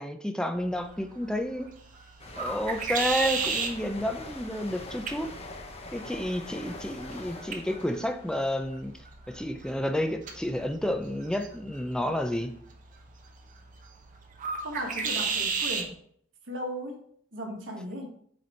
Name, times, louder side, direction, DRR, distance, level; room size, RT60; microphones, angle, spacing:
voice 1, 0.0-1.7 2.4-5.3 5.9-8.9 9.3-12.5, equal, 5° left, 7 dB, 0.5 m, -30 dB
sound 1, 0.6-15.9, right 5 dB, 45° right, 0.9 m, -36 dB
sound 2, 2.2-9.7 10.0-10.3, left 2 dB, 35° left, 0.8 m, -44 dB
voice 2, 14.6-15.9 16.5-17.0 17.3-18.1, equal, 90° right, 1 dB, 1.7 m, -36 dB
8.1 x 3.4 x 4.3 m, 0.63 s
head